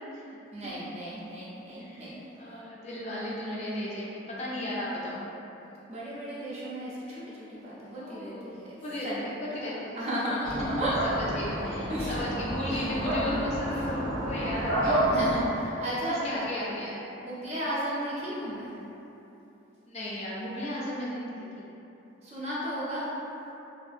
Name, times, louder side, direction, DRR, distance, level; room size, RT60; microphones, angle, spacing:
voice 1, 0.5-2.2 5.9-8.8 9.0-9.2 9.5-10.9 11.9-12.2 12.7-13.4 15.1-16.5 17.2-18.7 22.2-23.1, equal, 35° right, -8 dB, 0.5 m, -34 dB
voice 2, 1.8-5.3 8.0-10.0 10.6-15.0 16.1-17.0 19.9-21.7, left 1 dB, 35° left, -6 dB, 0.3 m, -35 dB
sound 1, 10.4-15.5, right 1 dB, 80° right, 1.0 m, -30 dB
2.6 x 2.5 x 2.4 m, 3.0 s
head